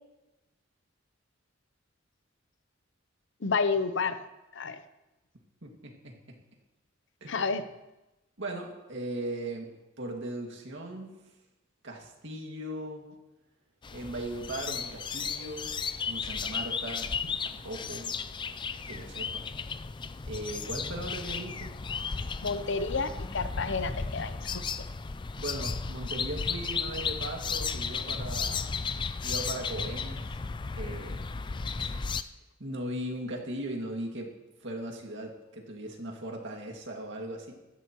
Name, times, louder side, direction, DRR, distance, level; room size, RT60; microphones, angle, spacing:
voice 1, 3.4-4.2 4.5-4.8 7.3-7.6 22.4-24.6, left 4 dB, 65° left, 11 dB, 0.7 m, -30 dB
voice 2, 5.6-6.4 7.2-7.6 8.4-11.1 11.8-13.2 13.9-18.2 18.9-19.5 20.3-21.7 25.3-28.8 29.2-30.4 30.8-31.2 31.7-32.0 32.6-34.3 34.6-37.5, right 1 dB, 65° right, 1 dB, 2.2 m, -38 dB
sound 1, 13.8-32.2, left 5 dB, 25° left, 0.4 m, -34 dB
15.5 x 12.5 x 3.1 m, 1.0 s
head